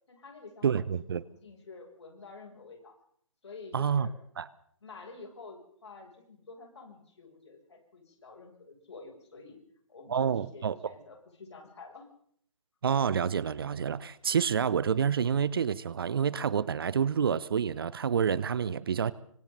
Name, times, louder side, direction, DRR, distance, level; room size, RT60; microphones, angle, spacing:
voice 1, 0.1-0.9 1.3-3.0 3.4-4.1 4.8-9.6 9.9-12.1 18.5-18.8, left 4 dB, 60° left, 2 dB, 7.2 m, -49 dB
voice 2, 0.6-1.2 3.7-4.1 4.4-4.5 10.1-10.8 12.8-19.1, right 7 dB, 45° right, 19 dB, 0.7 m, -28 dB
26.5 x 25.0 x 4.0 m, 0.63 s
figure-of-eight pair, 140°, 17 cm